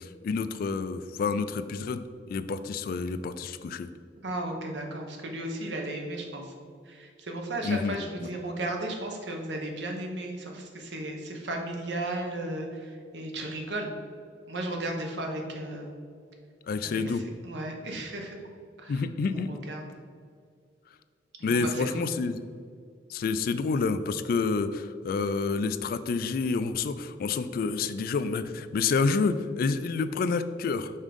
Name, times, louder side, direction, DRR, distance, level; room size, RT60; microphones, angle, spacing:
voice 1, 0.0-3.9 7.6-8.3 16.7-17.2 18.9-19.5 21.4-22.4 23.1-30.9, left 4 dB, 55° left, 12 dB, 0.3 m, -29 dB
voice 2, 4.2-6.5 6.9-13.9 14.5-16.0 16.8-17.2 17.4-18.4 18.8-19.0 19.3-19.9 21.4-22.1, right 1 dB, 70° right, 2 dB, 1.0 m, -35 dB
5.5 x 3.6 x 5.1 m, 2.2 s
head